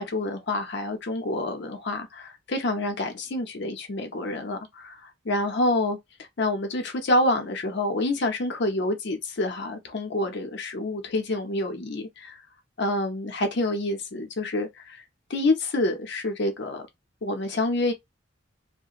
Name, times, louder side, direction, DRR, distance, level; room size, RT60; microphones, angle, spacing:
voice 1, 0.0-6.0 6.4-12.4 12.8-15.0 15.3-16.8 17.2-17.9, left 2 dB, 60° left, 0.7 m, -27 dB
2.8 x 2.1 x 2.4 m
head